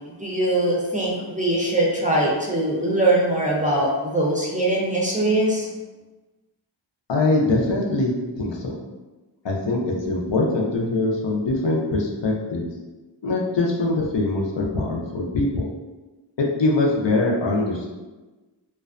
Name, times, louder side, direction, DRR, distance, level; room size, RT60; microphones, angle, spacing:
voice 1, 0.0-5.7, right 1 dB, 15° right, -4 dB, 0.5 m, -22 dB
voice 2, 7.1-8.7 9.4-12.7 13.2-15.7 16.4-17.9, left 2 dB, 65° left, -1 dB, 0.5 m, -23 dB
2.4 x 2.1 x 2.4 m, 1.2 s
wide cardioid pair, 45°, 46 cm